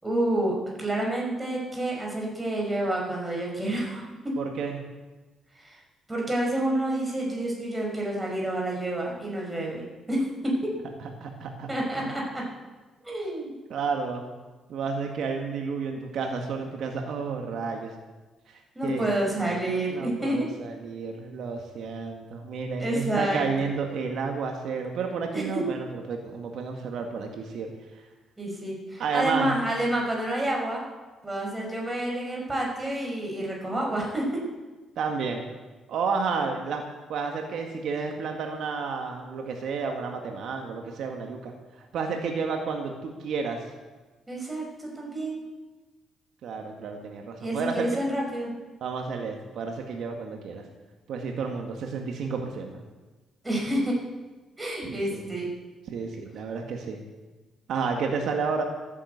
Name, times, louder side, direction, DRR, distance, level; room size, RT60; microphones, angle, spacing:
voice 1, 0.0-4.1 5.6-5.8 6.1-10.5 11.7-12.4 13.0-13.5 18.8-20.4 22.8-23.4 25.3-25.6 28.4-30.8 31.2-34.3 44.3-45.4 47.4-48.5 53.4-54.0 54.6-55.5, right 1 dB, 15° right, -2 dB, 5.8 m, -29 dB
voice 2, 4.4-4.8 11.0-11.7 12.0-12.1 13.7-14.2 14.7-17.9 18.5-19.6 19.9-27.7 29.0-29.6 35.0-35.5 35.9-36.8 37.1-41.5 41.8-43.6 46.4-47.9 48.8-50.6 51.1-52.7 54.9-55.2 55.9-57.0 57.7-58.6, right 5 dB, 70° right, 3 dB, 1.8 m, -31 dB
14.0 x 9.8 x 8.1 m, 1.2 s
cardioid pair, 90°, 0 cm